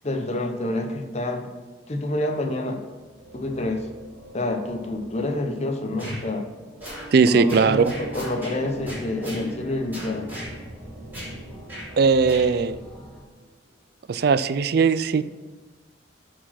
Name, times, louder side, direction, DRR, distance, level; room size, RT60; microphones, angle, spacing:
voice 1, 0.0-1.5 1.9-2.8 3.3-3.9 4.3-6.5 7.3-10.3, left 1 dB, 35° left, 5 dB, 0.8 m, -28 dB
sound 1, 2.6-13.8, right 2 dB, 80° right, 1.6 m, -45 dB
sound 2, 6.0-6.2 6.8-7.1 7.5-8.6 8.9-9.4 9.9-10.5 11.1-11.3 11.7-11.9 12.3-12.5, equal, 10° right, 3.1 m, -36 dB
voice 2, 7.1-7.9 12.0-12.8 14.1-15.2, right 5 dB, 55° right, 14 dB, 0.4 m, -19 dB
sound 3, 8.3-13.2, right 1 dB, 5° left, 1.1 m, -44 dB
8.6 x 4.7 x 5.9 m, 1.2 s
head